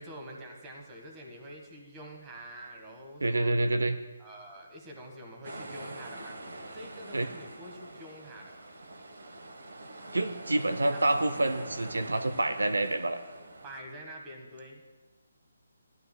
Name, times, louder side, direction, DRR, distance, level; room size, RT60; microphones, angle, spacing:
voice 1, 0.0-3.5 4.2-6.4 6.7-8.5 10.9-11.0 13.6-14.8, right 1 dB, 20° right, 0 dB, 1.4 m, -46 dB
voice 2, 3.2-4.0 7.1-7.3 10.1-13.2, right 2 dB, 85° right, 10 dB, 0.5 m, -27 dB
sound 1, 5.4-13.8, right 2 dB, 70° right, 1.1 m, -44 dB
14.5 x 11.0 x 2.2 m, 1.2 s
figure-of-eight pair, 150°, 0 cm